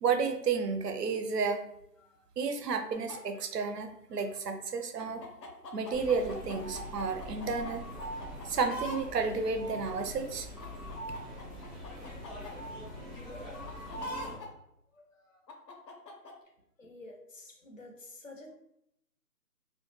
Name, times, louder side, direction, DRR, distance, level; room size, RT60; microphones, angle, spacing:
voice 1, 0.0-1.6 2.4-5.2 5.7-7.8 8.4-10.5, right 5 dB, 75° right, 6 dB, 0.6 m, -31 dB
sound 1, 2.9-3.2 5.0-7.7 8.0-9.0 9.8-9.9 10.6-12.5 13.7-14.5 15.5-16.3, left 1 dB, 90° left, 0.8 m, -43 dB
sound 2, 5.9-14.4, equal, ahead, 0.5 m, -43 dB
voice 2, 16.8-18.5, left 2 dB, 55° left, 1 dB, 0.6 m, -50 dB
2.1 x 2.0 x 3.1 m, 0.77 s
figure-of-eight pair, 175°, 48 cm